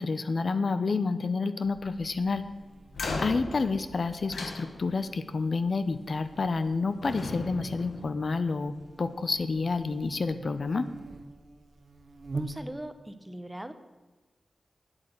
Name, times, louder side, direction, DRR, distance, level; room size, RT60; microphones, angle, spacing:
voice 1, 0.0-2.4 3.2-10.9, left 4 dB, 55° left, 12 dB, 0.6 m, -29 dB
Buzz, 1.6-13.0, right 3 dB, 45° right, 0.8 m, -46 dB
sound 1, 2.9-5.2 6.3-6.7 7.0-8.8, left 3 dB, 85° left, 1.4 m, -37 dB
voice 2, 12.3-13.7, right 1 dB, 10° right, 10 dB, 0.8 m, -39 dB
9.0 x 8.4 x 8.0 m, 1.2 s
wide cardioid pair, 110°, 0 cm